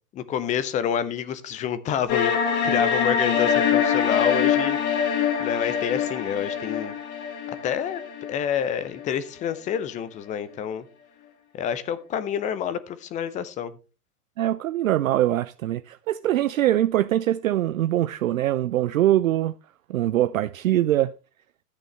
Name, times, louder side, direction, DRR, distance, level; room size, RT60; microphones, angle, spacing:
voice 1, 0.1-2.3 2.6-4.8 5.4-6.9 7.6-8.0 8.3-10.8 11.5-13.7, left 9 dB, 15° left, 0.6 m, -28 dB
sound 1, 2.1-9.0, left 7 dB, 45° left, 2.2 m, -24 dB
voice 2, 14.4-19.5 19.9-21.1, right 13 dB, 60° right, 0.5 m, -23 dB
13.0 x 8.9 x 3.2 m
figure-of-eight pair, 100°, 46 cm